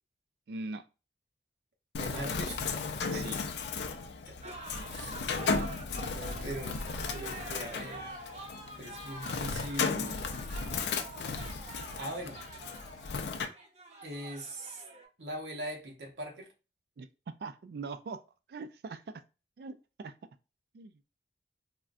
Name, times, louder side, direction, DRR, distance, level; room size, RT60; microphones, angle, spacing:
voice 1, 0.5-0.8 3.1-3.4 17.0-18.2 18.5-19.2 19.6-20.1 20.7-20.9, right 3 dB, 60° right, 0.3 m, -41 dB
Bird, 1.9-13.4, left 4 dB, 75° left, 0.4 m, -35 dB
voice 2, 2.0-2.7 3.1-3.3 4.2-4.5 4.9-5.6 6.1-8.1 8.8-10.7 11.5-11.6 12.0-12.4 14.0-14.8 15.2-16.5, right 1 dB, 80° right, 0.8 m, -41 dB
sound 1, 4.4-15.1, right 3 dB, 40° right, 0.7 m, -47 dB
3.6 x 2.2 x 2.4 m
head